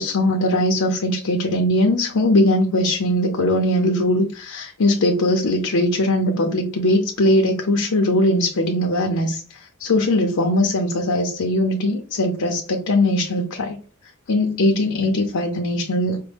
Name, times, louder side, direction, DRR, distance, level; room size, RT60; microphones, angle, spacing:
voice 1, 0.0-13.8 14.3-16.2, left 1 dB, 80° left, 2 dB, 0.7 m, -20 dB
5.2 x 2.1 x 3.4 m, 0.37 s
head